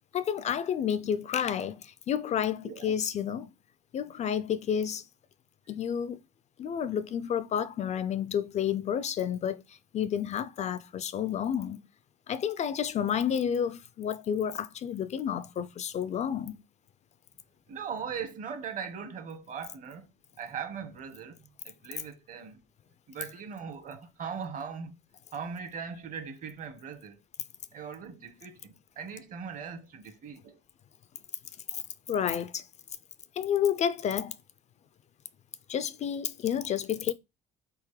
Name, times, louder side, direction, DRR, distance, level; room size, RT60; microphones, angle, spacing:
voice 1, 0.1-3.5 3.9-5.0 5.7-6.2 6.6-11.8 12.3-16.6 31.7-31.8 32.1-32.6 33.4-34.4 35.7-37.1, left 8 dB, 40° left, 0.4 m, -30 dB
voice 2, 17.7-20.1 20.4-22.7 23.1-25.0 25.3-27.2 27.7-30.6, right 6 dB, 50° right, 1.1 m, -40 dB
4.1 x 3.6 x 3.2 m
cardioid pair, 110°, 17 cm